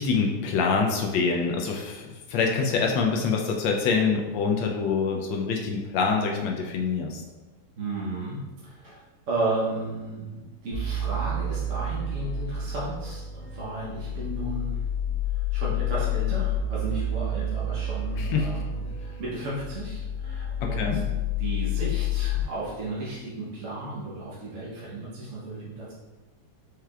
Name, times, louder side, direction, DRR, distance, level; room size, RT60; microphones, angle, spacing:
voice 1, 0.0-7.2 18.2-18.5 20.6-21.0, left 5 dB, 80° left, 1 dB, 1.3 m, -25 dB
voice 2, 7.7-9.0 9.3-14.8 15.3-21.0 21.4-25.9, right 2 dB, 50° right, -7 dB, 1.0 m, -34 dB
sound 1, 10.7-22.4, left 3 dB, 80° right, 2.3 m, -29 dB
4.8 x 4.4 x 2.3 m, 1.2 s
omnidirectional pair, 2.1 m